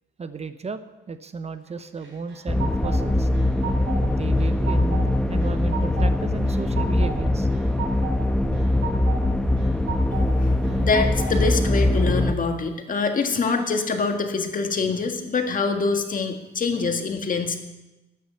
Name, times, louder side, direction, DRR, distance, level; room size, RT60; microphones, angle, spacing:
voice 1, 0.2-0.8 1.1-3.3 4.0-7.5 10.5-10.8, right 4 dB, 35° right, 11 dB, 0.8 m, -34 dB
sound 1, 2.0-3.0 3.3-4.1 4.4-5.0 5.4-6.1 6.5-7.2 7.5-8.2 8.5-9.2 9.6-10.3 10.6-11.4, right 6 dB, 75° right, 3.8 m, -34 dB
sound 2, 2.5-12.3, left 1 dB, 5° left, 1.0 m, -22 dB
voice 2, 10.1-17.6, left 4 dB, 45° left, 5 dB, 1.8 m, -25 dB
13.0 x 9.4 x 6.9 m, 1.0 s
cardioid pair, 90°, 20 cm